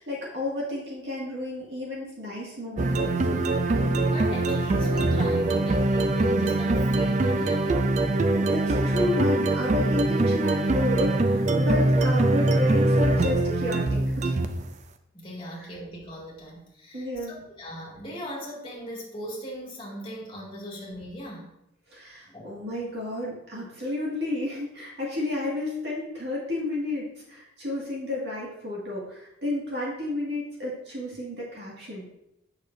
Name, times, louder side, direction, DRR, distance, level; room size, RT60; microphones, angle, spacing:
voice 1, 0.0-3.5 8.0-14.4 15.5-15.7 16.9-17.4 21.9-32.1, left 2 dB, 60° right, -5 dB, 2.1 m, -32 dB
sound 1, 2.8-14.7, right 2 dB, 40° right, 0.4 m, -23 dB
voice 2, 4.1-7.9 15.1-21.5 22.2-22.5, equal, 25° left, -4 dB, 2.1 m, -39 dB
8.0 x 6.6 x 2.7 m, 0.82 s
head